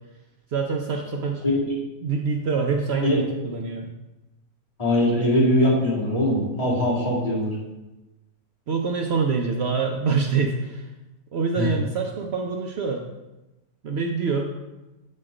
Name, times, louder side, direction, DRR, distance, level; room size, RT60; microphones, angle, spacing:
voice 1, 0.5-1.4 2.0-3.9 8.7-10.9 11.3-13.0 13.8-14.5, right 5 dB, 90° right, 2 dB, 0.5 m, -25 dB
voice 2, 4.8-7.5 11.6-11.7, left 1 dB, 20° left, -7 dB, 2.1 m, -21 dB
7.5 x 4.3 x 4.9 m, 1.0 s
omnidirectional pair, 1.8 m